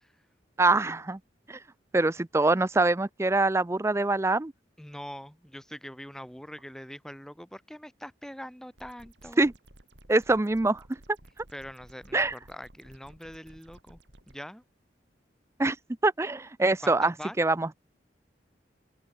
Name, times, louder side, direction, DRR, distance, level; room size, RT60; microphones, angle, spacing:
voice 1, 0.6-1.2 1.5-1.6 1.9-4.5 9.4-9.5 10.1-10.8 12.1-12.3 15.6-15.8 16.0-17.7, right 2 dB, 15° right, 0.4 m, -24 dB
voice 2, 4.8-9.4 11.5-14.0 14.3-14.6 16.8-17.4, equal, 5° left, 1.4 m, -43 dB
sound 1, 8.8-14.3, right 1 dB, 75° right, 3.3 m, -55 dB
open air
head